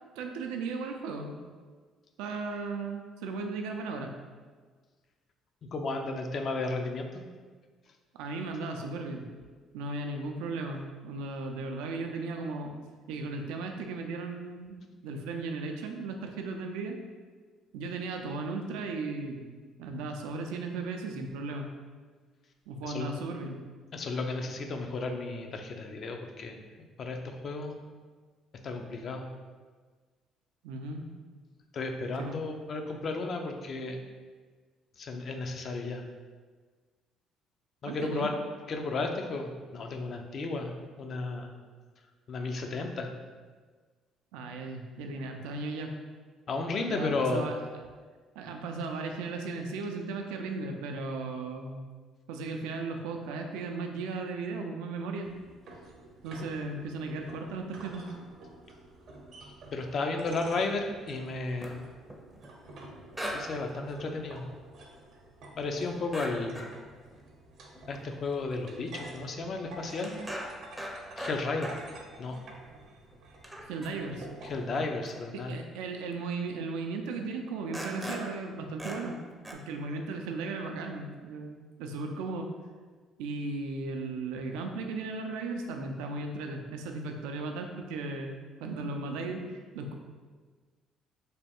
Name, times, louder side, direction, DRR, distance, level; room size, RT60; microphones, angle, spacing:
voice 1, 0.2-1.3 2.2-4.1 8.1-9.3 9.7-12.7 13.1-17.0 17.7-19.5 19.8-21.7 22.7-23.6 30.6-31.1 32.2-32.4 37.9-38.3 44.3-45.9 46.9-47.6 48.4-51.8 52.3-55.3 56.2-58.1 73.7-74.3 75.3-79.2 79.5-82.5 83.2-89.9, right 3 dB, 85° right, 4 dB, 0.4 m, -36 dB
voice 2, 5.6-7.2 22.8-23.1 23.9-27.8 28.6-29.3 31.7-34.0 35.0-36.0 37.8-38.3 38.7-41.5 42.3-43.1 46.5-47.5 59.7-61.8 63.3-64.5 65.6-66.7 67.9-70.2 71.2-71.7 72.2-72.4 74.5-75.6, left 3 dB, 50° left, 4 dB, 0.5 m, -33 dB
sound 1, 55.2-74.8, right 2 dB, 65° right, 0.7 m, -50 dB
sound 2, 61.3-62.5 63.1-63.6 63.9-64.0 66.1-66.8 67.1-67.2 67.8-68.1 68.7-68.8 68.9-69.2 69.5-72.0 72.6-72.7 73.1-73.2 73.4-74.3 75.0-75.3 76.1-76.2 77.2-77.3 77.7-78.4 78.8-79.2 79.4-79.5, equal, 5° right, 0.5 m, -40 dB
3.3 x 2.3 x 4.3 m, 1.5 s
supercardioid pair, 75°, 0 cm